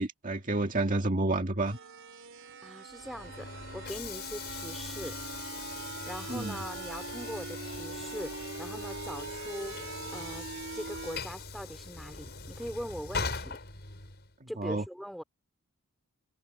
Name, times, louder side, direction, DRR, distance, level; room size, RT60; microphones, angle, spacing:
voice 1, 0.0-1.8 6.3-6.6 14.6-14.8, right 2 dB, 35° right, 2.0 m, -29 dB
sound 1, 1.6-11.2, right 4 dB, 60° right, 4.4 m, -43 dB
voice 2, 2.6-5.2 6.1-10.5 10.7-13.6 14.5-15.2, equal, ahead, 4.0 m, -41 dB
Train / Sliding door, 2.9-14.3, left 4 dB, 50° left, 6.7 m, -41 dB
head